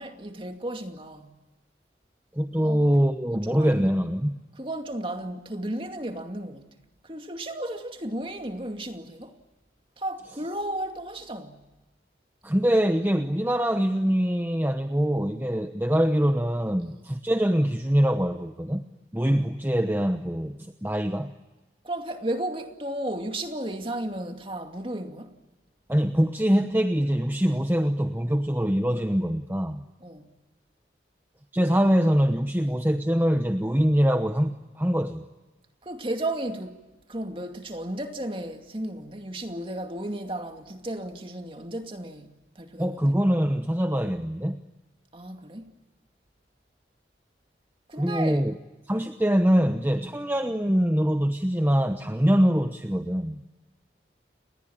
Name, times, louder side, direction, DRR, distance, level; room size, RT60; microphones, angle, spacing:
voice 1, 0.0-1.3 2.6-2.8 3.3-3.8 4.6-6.7 7.0-9.4 10.0-11.6 21.8-25.3 30.0-30.3 35.8-36.8 37.1-43.0 45.1-45.7 47.9-48.4, right 1 dB, 30° right, 2.4 m, -34 dB
voice 2, 2.3-4.4 12.4-18.8 19.1-21.3 25.9-29.8 31.5-35.2 42.8-44.6 48.0-48.5 48.9-53.4, equal, 10° right, 1.0 m, -24 dB
30.0 x 20.5 x 8.8 m
head